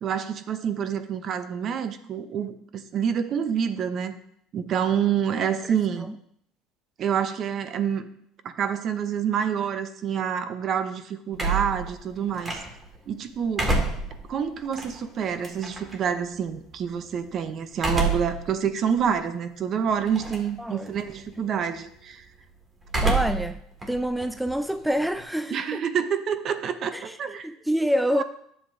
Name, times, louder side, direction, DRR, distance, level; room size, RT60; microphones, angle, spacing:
voice 1, 0.0-4.2 4.5-6.1 7.0-8.1 8.4-12.6 13.1-13.7 14.3-22.2 25.5-27.5 28.1-28.2, right 8 dB, 50° right, 0.8 m, -27 dB
sound 1, 11.3-13.0 13.4-16.0 17.7-18.4 18.9-19.0 20.1-20.6 20.9-21.3 22.9-23.5 23.8-25.2, right 3 dB, 20° right, 2.0 m, -28 dB
voice 2, 20.6-20.9 23.0-23.6 23.9-25.9 26.9-28.2, equal, 5° right, 0.4 m, -27 dB
10.5 x 7.4 x 2.7 m
supercardioid pair, 95°, 0 cm